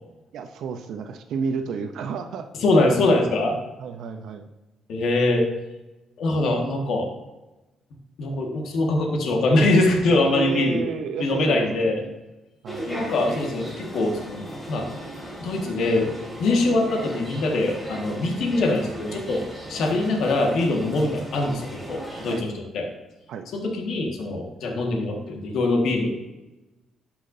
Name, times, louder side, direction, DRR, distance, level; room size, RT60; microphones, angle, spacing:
voice 1, 0.3-2.5 3.8-4.5 10.2-12.2 12.6-13.2 22.3-22.4 23.3-23.4, right 6 dB, 75° right, 7 dB, 0.6 m, -31 dB
voice 2, 2.6-3.6 4.9-5.5 6.2-7.1 8.2-10.9 11.2-12.0 12.9-14.9 15.4-16.1 16.4-19.4 19.7-22.9 23.5-26.1, left 2 dB, 75° left, 1 dB, 1.7 m, -23 dB
sound 1, 12.6-22.4, equal, ahead, 2.5 m, -37 dB
12.0 x 5.7 x 2.7 m, 1.1 s
cardioid pair, 90°, 0 cm